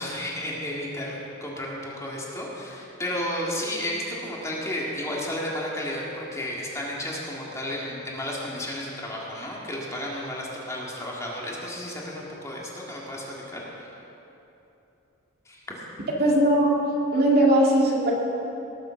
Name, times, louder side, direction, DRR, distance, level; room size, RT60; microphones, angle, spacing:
voice 1, 0.0-13.9 15.5-15.6, left 1 dB, 15° left, -4 dB, 2.0 m, -32 dB
voice 2, 16.2-16.7 17.1-18.1, right 1 dB, 50° right, -2 dB, 2.2 m, -19 dB
19.0 x 7.4 x 6.3 m, 2.9 s
head